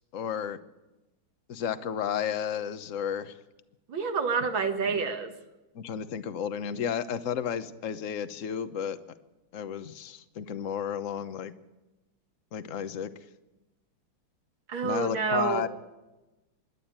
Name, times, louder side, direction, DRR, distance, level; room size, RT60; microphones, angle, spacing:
voice 1, 0.1-0.6 1.5-3.4 4.9-5.0 5.7-9.0 9.5-11.5 12.5-13.1 14.8-15.7, left 8 dB, 50° left, 13 dB, 1.1 m, -32 dB
voice 2, 3.9-5.3 14.7-15.7, right 5 dB, 70° right, 5 dB, 2.3 m, -28 dB
26.0 x 11.5 x 8.8 m, 1.1 s
omnidirectional pair, 2.3 m